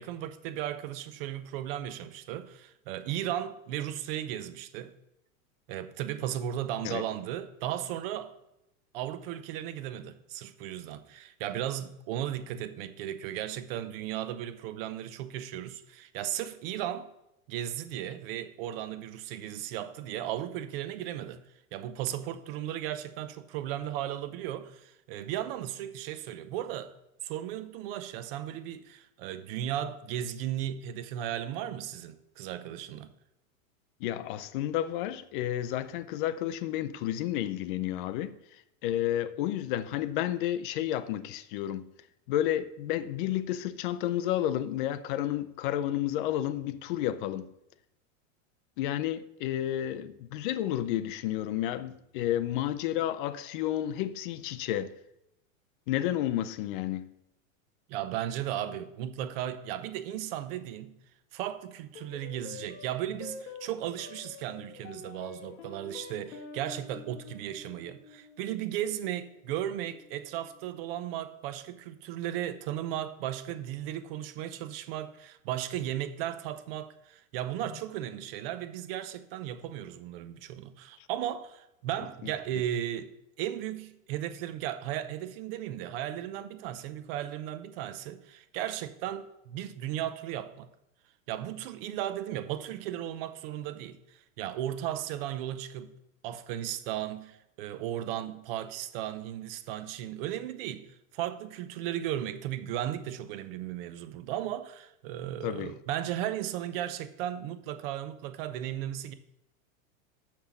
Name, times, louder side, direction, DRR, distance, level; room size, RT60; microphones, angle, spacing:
voice 1, 0.0-4.9 5.7-8.3 8.9-17.1 17.5-21.4 21.7-26.9 27.2-33.1 57.9-60.9 61.3-83.1 83.4-90.7 91.3-95.9 96.2-100.9 101.1-109.1, right 11 dB, 45° right, 0.7 m, -36 dB
voice 2, 34.0-38.4 38.8-41.9 42.3-47.5 48.8-54.9 55.9-57.1 82.2-82.3 105.4-105.7, left 12 dB, 40° left, 0.5 m, -31 dB
sound 1, 61.9-70.6, left 5 dB, 60° left, 1.4 m, -48 dB
6.6 x 5.9 x 7.1 m
supercardioid pair, 150°, 42 cm